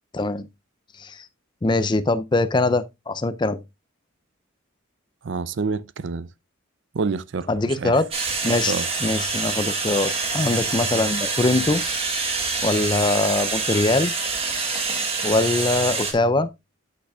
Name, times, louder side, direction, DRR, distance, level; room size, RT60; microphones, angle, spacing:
voice 1, 0.1-0.5 1.0-1.3 1.6-3.6 7.5-8.0 8.4-11.8 12.6-14.1 15.2-16.5, left 2 dB, 20° left, 0.4 m, -22 dB
voice 2, 5.2-6.3 6.9-7.9 8.7-8.9, right 4 dB, 60° right, 0.5 m, -27 dB
sound 1, 8.1-16.1, right 4 dB, 30° right, 1.6 m, -26 dB
8.8 x 8.2 x 2.3 m
head